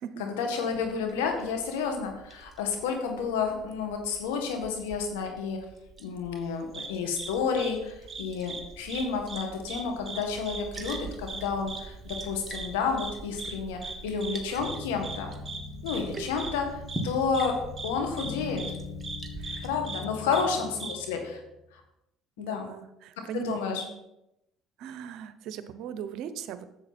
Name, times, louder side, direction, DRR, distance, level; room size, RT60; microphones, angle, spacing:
voice 1, 0.2-5.6 6.0-15.3 15.8-18.6 19.6-21.4 21.7-21.8 22.4-22.7 23.3-23.8, left 5 dB, 90° left, 4 dB, 1.7 m, -30 dB
Liquid, 0.7-19.7, right 2 dB, 20° right, 1.7 m, -45 dB
sound 1, 6.7-6.9 7.2-7.3 7.6-7.7 8.1-8.6 8.9-9.0 9.3-9.8 10.1-10.2 10.5-10.6 10.8-11.0 11.3-11.4 11.7-11.8 12.1-12.2 12.5-12.7 13.0-13.1 13.4-13.5 13.8-13.9 14.2-14.3 14.6-14.8 15.0-15.2 15.5-15.6 15.9-16.0 16.4-16.5 16.9-17.0 17.3-17.5 17.8-17.9 18.2-18.3 18.6-18.7 19.0-19.2 19.4-19.6 19.8-20.0 20.3-20.4 20.8-20.9, right 4 dB, 40° right, 1.7 m, -38 dB
sound 2, 14.6-21.6, left 5 dB, 55° left, 0.9 m, -42 dB
voice 2, 19.4-19.7 20.3-20.7 22.4-24.0 24.8-26.6, right 8 dB, 70° right, 12 dB, 0.7 m, -39 dB
10.0 x 7.4 x 4.3 m, 0.87 s
supercardioid pair, 75°, 0 cm